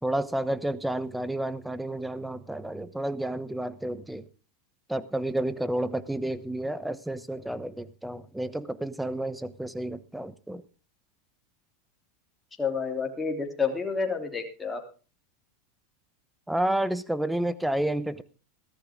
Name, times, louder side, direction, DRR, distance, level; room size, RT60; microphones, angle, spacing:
voice 1, 0.0-4.3 4.9-10.6 16.5-18.2, right 1 dB, 5° right, 15 dB, 1.0 m, -30 dB
voice 2, 12.6-14.8, left 5 dB, 10° left, 1 dB, 3.2 m, -29 dB
15.5 x 13.5 x 3.7 m, 0.35 s
hypercardioid pair, 110°, 0 cm